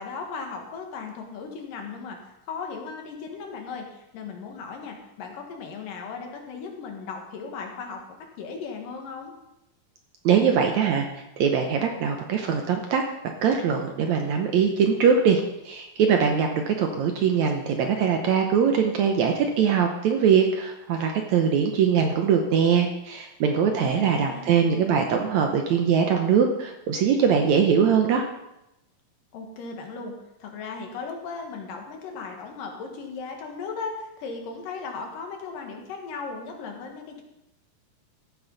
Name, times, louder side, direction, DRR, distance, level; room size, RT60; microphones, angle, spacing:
voice 1, 0.0-2.2 2.5-8.0 8.4-9.3 23.6-24.6 29.3-37.2, left 5 dB, 75° left, 2 dB, 3.2 m, -37 dB
voice 2, 10.3-11.1 11.4-13.0 13.4-28.3, right 7 dB, 70° right, 4 dB, 1.9 m, -22 dB
14.5 x 9.3 x 4.0 m, 0.90 s
omnidirectional pair, 4.0 m